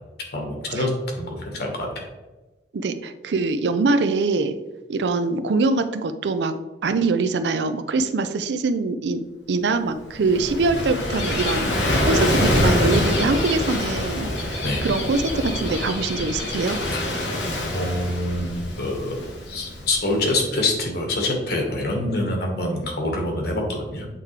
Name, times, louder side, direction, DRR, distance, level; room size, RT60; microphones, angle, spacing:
voice 1, 0.3-1.9 14.6-14.9 16.9-17.0 17.7-19.1 19.5-24.1, left 1 dB, 65° left, 1 dB, 1.4 m, -25 dB
voice 2, 2.7-4.6 4.9-6.5 6.8-9.2 9.5-16.8, right 3 dB, 80° right, 10 dB, 0.5 m, -23 dB
Gull seagull / Waves surf, 9.9-20.5, left 1 dB, 85° left, 1.1 m, -25 dB
8.2 x 3.6 x 3.2 m, 1.1 s
head